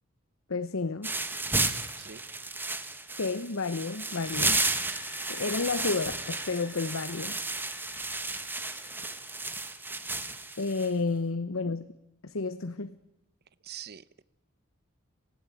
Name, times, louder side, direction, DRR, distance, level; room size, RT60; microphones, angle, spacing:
voice 1, 0.5-1.1 3.2-4.6 5.3-7.4 10.6-11.9 12.2-13.0, left 3 dB, 80° left, 0.9 m, -31 dB
sound 1, 1.0-10.9, right 2 dB, 10° right, 1.2 m, -33 dB
voice 2, 2.0-2.5 13.6-14.2, right 9 dB, 50° right, 0.7 m, -45 dB
sound 2, 3.9-9.3, left 8 dB, 55° left, 3.4 m, -51 dB
26.0 x 15.5 x 9.1 m
head